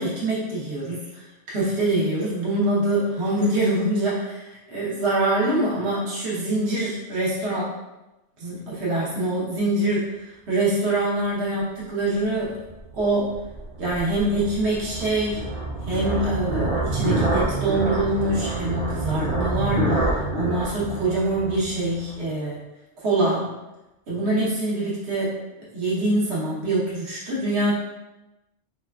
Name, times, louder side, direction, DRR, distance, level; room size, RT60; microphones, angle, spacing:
voice 1, 0.0-7.7 8.4-12.5 12.9-13.4 13.8-15.4 15.9-22.6 23.0-23.5 24.1-25.4 25.7-27.8, right 1 dB, 65° right, -7 dB, 1.2 m, -24 dB
sound 1, 12.6-22.1, right 2 dB, 45° right, 0.5 m, -27 dB
4.7 x 2.2 x 2.3 m, 1.0 s
omnidirectional pair, 1.2 m